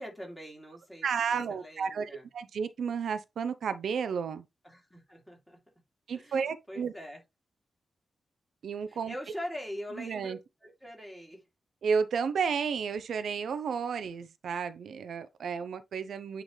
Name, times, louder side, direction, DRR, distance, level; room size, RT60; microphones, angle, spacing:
voice 1, 0.0-2.2 4.6-5.6 6.1-7.2 8.9-11.4, equal, 5° left, 2.7 m, -43 dB
voice 2, 1.0-4.5 6.1-6.9 8.6-9.2 10.0-10.4 11.8-16.4, right 6 dB, 80° right, 0.5 m, -32 dB
9.0 x 3.8 x 3.2 m
wide cardioid pair, 155°, 0 cm